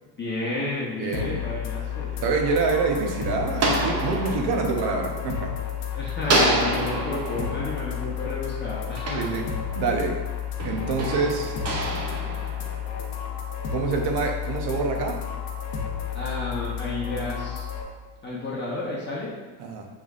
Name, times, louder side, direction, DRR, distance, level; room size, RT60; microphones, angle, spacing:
voice 1, 0.2-2.2 5.9-9.4 16.1-17.7 18.2-19.3, left 2 dB, 25° left, -6 dB, 0.8 m, -31 dB
voice 2, 1.0-1.4 2.2-5.6 9.1-9.5 9.8-10.2 10.6-11.5 13.7-15.2 19.6-19.9, right 4 dB, 65° right, 3 dB, 0.8 m, -26 dB
sound 1, 1.1-17.8, left 9 dB, 70° left, 0.8 m, -32 dB
sound 2, 2.1-5.8 6.2-10.0 10.6-13.3, right 2 dB, 40° right, 0.8 m, -29 dB
5.5 x 3.4 x 2.4 m, 1.4 s
cardioid pair, 120°, 41 cm